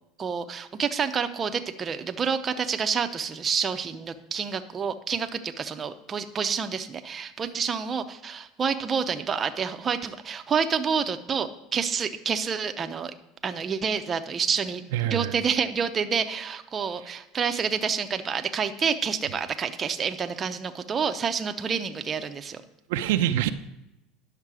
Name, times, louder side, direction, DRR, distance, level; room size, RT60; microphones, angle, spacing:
voice 1, 0.2-13.1 13.4-14.8 15.1-22.6, right 6 dB, 25° right, 7 dB, 0.6 m, -28 dB
voice 2, 14.9-15.4 17.0-17.2 22.9-23.5, right 12 dB, 90° right, 9 dB, 0.5 m, -26 dB
10.5 x 6.5 x 4.8 m, 0.91 s
supercardioid pair, 135°, 0 cm